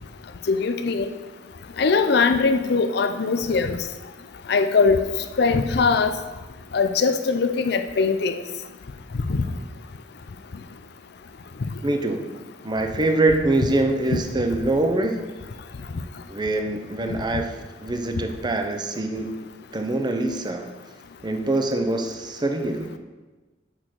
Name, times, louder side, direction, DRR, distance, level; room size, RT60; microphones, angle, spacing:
voice 1, 0.5-1.1 1.8-3.8 4.5-5.0 5.4-6.2 6.7-8.4 9.3-9.5, left 4 dB, 65° left, 8 dB, 0.5 m, -21 dB
voice 2, 11.8-12.4 12.6-15.3 16.3-17.5 17.8-19.4 19.7-20.7 21.2-22.9, right 2 dB, 25° right, 6 dB, 0.7 m, -24 dB
6.5 x 6.1 x 6.4 m, 1.3 s
head